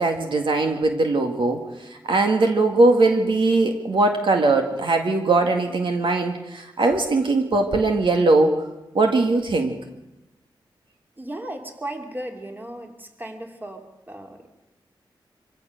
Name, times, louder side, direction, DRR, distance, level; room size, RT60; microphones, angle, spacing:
voice 1, 0.0-1.6 2.0-8.6 8.9-9.8, right 3 dB, 70° right, 4 dB, 1.9 m, -20 dB
voice 2, 11.2-14.5, right 1 dB, 20° right, 3 dB, 2.9 m, -36 dB
25.0 x 16.0 x 6.6 m, 0.98 s
wide cardioid pair, 90°, 9 cm